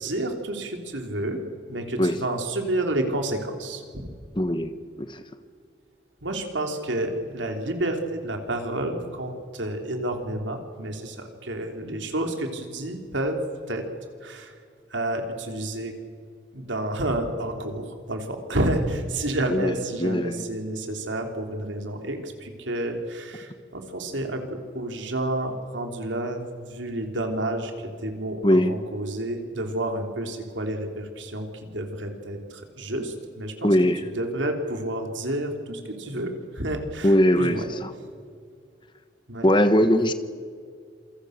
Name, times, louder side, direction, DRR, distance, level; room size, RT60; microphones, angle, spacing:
voice 1, 0.0-1.4 1.7-4.1 6.2-13.4 13.7-13.8 14.2-14.6 14.9-15.9 16.5-33.7 34.1-37.7 39.3-39.5, right 1 dB, 85° right, 4 dB, 3.5 m, -30 dB
voice 2, 4.4-4.7 5.0-5.2 19.5-19.7 20.0-20.4 28.4-28.7 33.6-34.0 37.0-37.9 39.4-40.1, equal, 25° left, 10 dB, 1.3 m, -20 dB
27.5 x 23.5 x 6.6 m, 2.2 s
head